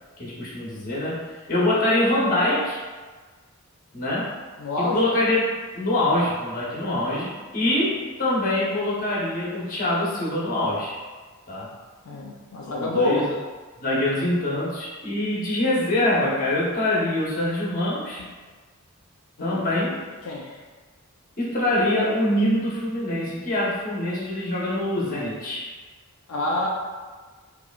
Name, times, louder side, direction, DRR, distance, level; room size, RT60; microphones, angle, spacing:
voice 1, 0.2-2.8 3.9-4.3 4.8-11.0 11.5-11.7 12.7-13.3 13.8-18.3 19.4-19.9 21.4-25.7, left 1 dB, 40° left, -6 dB, 1.0 m, -24 dB
voice 2, 4.6-5.0 12.1-13.2 19.4-19.6 20.2-20.4 26.3-26.7, left 2 dB, 80° left, -3 dB, 0.5 m, -26 dB
4.7 x 2.7 x 2.4 m, 1.4 s
head